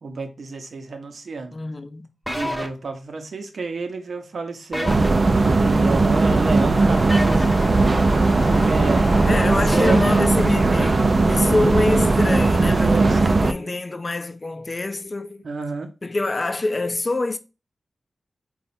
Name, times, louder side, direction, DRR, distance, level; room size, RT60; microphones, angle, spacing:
voice 1, 0.0-1.6 2.3-4.9 5.5-7.8 8.5-9.2 9.7-10.0 12.8-13.6 15.4-15.9, right 4 dB, 75° right, 0.7 m, -30 dB
voice 2, 1.5-2.1 9.2-15.4 16.0-17.4, left 2 dB, 40° left, 0.5 m, -25 dB
sound 1, 2.3-2.7 4.7-5.1 7.1-7.5 9.7-10.2, equal, 5° right, 0.7 m, -27 dB
sound 2, 4.8-13.5, right 3 dB, 50° right, 0.4 m, -18 dB
sound 3, 6.0-12.2, left 2 dB, 60° left, 0.8 m, -35 dB
4.1 x 2.4 x 4.1 m
cardioid pair, 65°, 0 cm